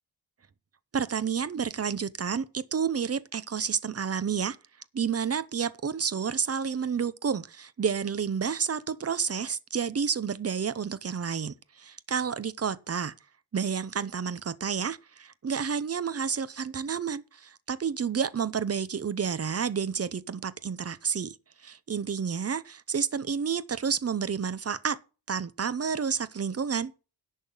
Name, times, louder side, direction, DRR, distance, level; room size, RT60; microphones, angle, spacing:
voice 1, 0.9-4.6 4.9-13.1 13.5-21.4 21.6-25.0 25.3-26.9, right 6 dB, 35° right, 0.7 m, -30 dB
10.5 x 5.7 x 7.1 m
wide cardioid pair, 120°, 44 cm